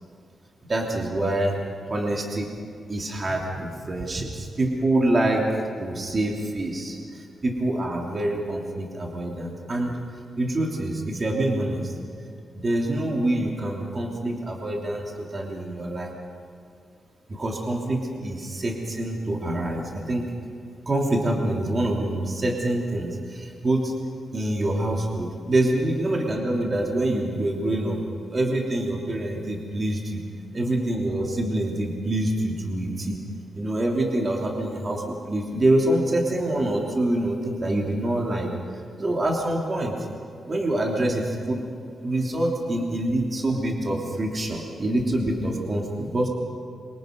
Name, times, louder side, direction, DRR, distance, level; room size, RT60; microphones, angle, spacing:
voice 1, 0.7-1.5 1.9-2.5 2.9-5.5 5.8-10.0 10.4-11.9 12.5-16.1 17.3-20.3 20.8-23.9 24.3-28.0 28.3-30.2 30.5-33.2 33.5-38.5 39.0-40.0 40.5-41.6 42.0-46.3, right 1 dB, 30° right, -1 dB, 3.1 m, -26 dB
27.0 x 25.0 x 5.3 m, 2.4 s
wide cardioid pair, 125°, 0 cm